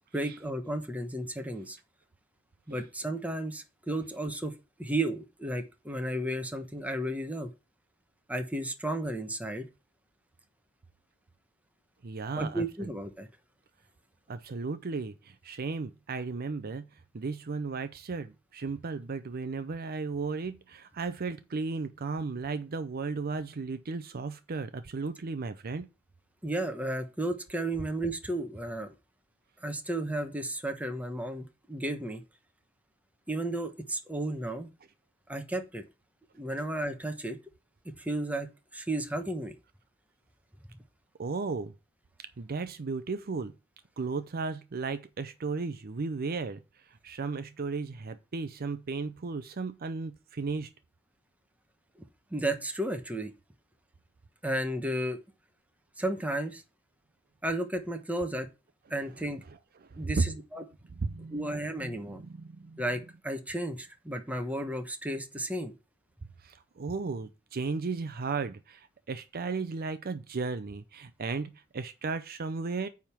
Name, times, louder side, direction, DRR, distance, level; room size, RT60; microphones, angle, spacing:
voice 1, 0.1-1.8 2.7-4.5 4.8-7.5 8.3-9.7 12.3-13.3 26.4-28.9 29.6-32.2 33.3-34.7 35.3-35.8 36.4-37.4 38.0-38.5 38.7-39.5 52.3-53.3 54.4-55.2 56.0-56.6 57.4-58.5 58.9-59.4 60.0-60.6 61.3-62.2 62.8-65.7, right 1 dB, 5° right, 1.0 m, -33 dB
voice 2, 12.0-12.6 14.3-16.8 17.1-25.9 41.2-41.7 42.4-43.5 44.0-46.6 47.0-50.7 59.9-60.2 61.0-62.8 66.4-72.9, right 4 dB, 50° right, 0.5 m, -35 dB
9.1 x 3.6 x 5.9 m
head